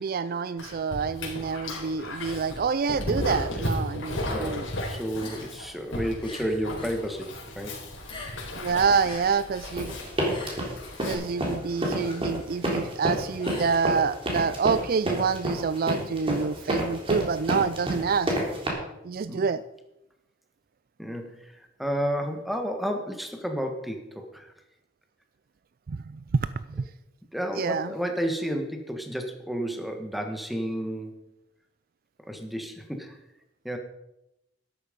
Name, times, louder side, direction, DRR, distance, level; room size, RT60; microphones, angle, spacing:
voice 1, 0.0-4.7 8.6-10.0 11.1-18.3 19.0-19.6 25.9-26.8 27.5-27.9, right 5 dB, 50° right, 15 dB, 0.4 m, -27 dB
Dog, 0.6-11.1, left 1 dB, 80° left, 4.4 m, -35 dB
voice 2, 4.2-7.8 19.3-19.4 21.0-21.5 21.8-24.5 27.3-31.2 32.3-33.2 33.6-33.8, equal, ahead, 4 dB, 1.6 m, -31 dB
sound 1, 5.2-7.0 7.3-8.6 8.9-14.3, left 2 dB, 25° left, 2.6 m, -44 dB
sound 2, 9.8-18.7, right 1 dB, 30° right, 3.4 m, -28 dB
13.0 x 11.0 x 5.3 m, 0.88 s
head